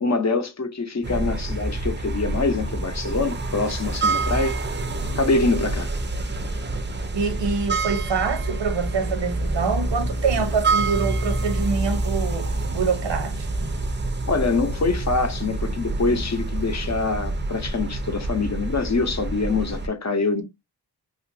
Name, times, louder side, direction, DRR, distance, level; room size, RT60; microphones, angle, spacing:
voice 1, 0.0-4.9 5.1-5.9 14.3-20.4, left 3 dB, 40° left, 0.7 m, -25 dB
sound 1, 1.0-19.9, right 2 dB, 25° right, 0.4 m, -27 dB
voice 2, 7.1-13.7, right 5 dB, 90° right, 0.7 m, -26 dB
3.0 x 2.5 x 2.6 m
wide cardioid pair, 90°, 42 cm